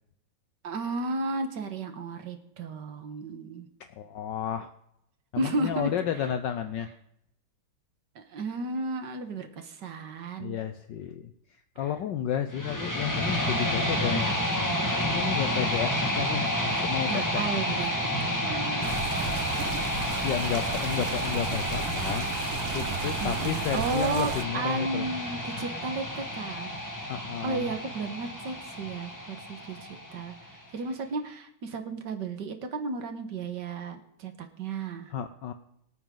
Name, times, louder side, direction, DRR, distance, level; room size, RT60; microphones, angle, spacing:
voice 1, 0.6-3.7 5.4-6.0 8.2-10.6 11.8-11.9 17.1-19.9 23.2-26.8 27.4-35.1, right 3 dB, 60° right, 7 dB, 2.0 m, -34 dB
voice 2, 4.0-4.7 5.3-6.9 10.4-11.3 11.8-14.3 15.0-17.4 20.2-22.3 22.7-25.1 27.1-27.7 35.1-35.5, left 9 dB, 70° left, 9 dB, 1.3 m, -32 dB
sound 1, 12.5-30.5, left 1 dB, 10° left, 1.6 m, -30 dB
sound 2, 18.8-24.4, right 8 dB, 85° right, 1.9 m, -35 dB
23.5 x 9.1 x 3.9 m, 0.78 s
omnidirectional pair, 2.3 m